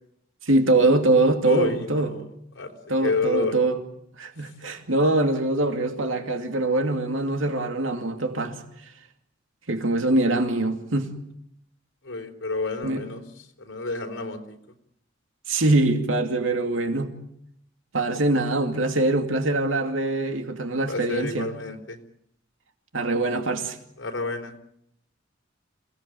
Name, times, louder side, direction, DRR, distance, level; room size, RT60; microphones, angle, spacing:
voice 1, 0.4-2.1 2.9-3.8 4.2-8.6 9.7-11.1 12.8-13.0 15.5-17.1 17.9-21.5 22.9-23.8, right 2 dB, 85° right, 2.5 m, -23 dB
voice 2, 1.5-2.2 2.6-2.7 3.0-3.6 12.0-13.2 13.6-14.6 20.9-22.0 24.0-24.5, left 3 dB, 70° left, 4.1 m, -29 dB
28.0 x 18.0 x 9.1 m
head